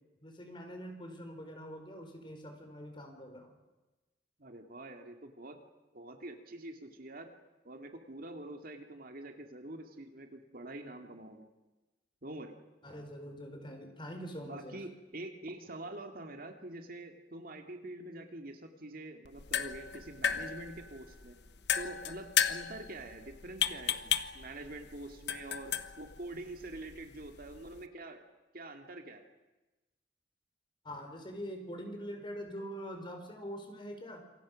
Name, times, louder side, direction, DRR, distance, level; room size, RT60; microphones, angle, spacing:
voice 1, 0.2-3.5 12.8-14.8 30.8-34.2, equal, 25° left, 5 dB, 4.4 m, -44 dB
voice 2, 4.4-5.6 5.9-7.3 7.6-11.5 12.2-12.6 14.4-21.4 21.8-28.2 28.5-29.2, right 2 dB, 55° right, 5 dB, 2.3 m, -46 dB
sound 1, 19.2-27.9, left 9 dB, 65° left, 1.2 m, -35 dB
27.5 x 24.0 x 6.4 m, 1.1 s
head